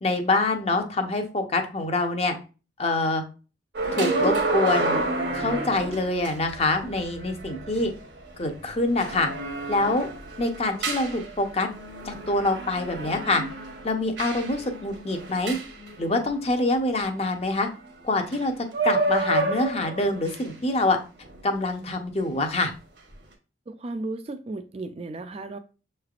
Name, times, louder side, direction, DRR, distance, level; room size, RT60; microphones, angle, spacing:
voice 1, 0.0-2.3 2.8-3.2 3.9-5.0 5.3-7.9 8.4-9.3 9.7-10.1 10.4-11.7 12.0-13.4 13.8-15.6 16.0-17.7 18.0-18.5 18.8-21.0 21.4-22.7, left 2 dB, 35° left, 0.7 m, -25 dB
sound 1, 3.7-16.5 18.3-18.4 18.7-20.6 21.2-21.4, right 2 dB, 70° right, 1.0 m, -30 dB
voice 2, 23.7-25.6, right 2 dB, 35° right, 0.3 m, -34 dB
6.5 x 3.2 x 2.4 m
head